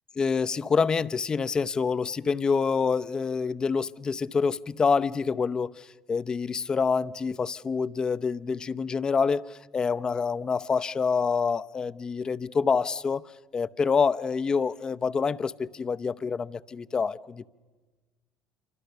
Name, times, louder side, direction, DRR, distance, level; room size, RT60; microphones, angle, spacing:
voice 1, 0.2-13.2 13.5-17.5, left 5 dB, 30° left, 0.8 m, -27 dB
27.5 x 25.0 x 6.8 m
hypercardioid pair, 65°, 2 cm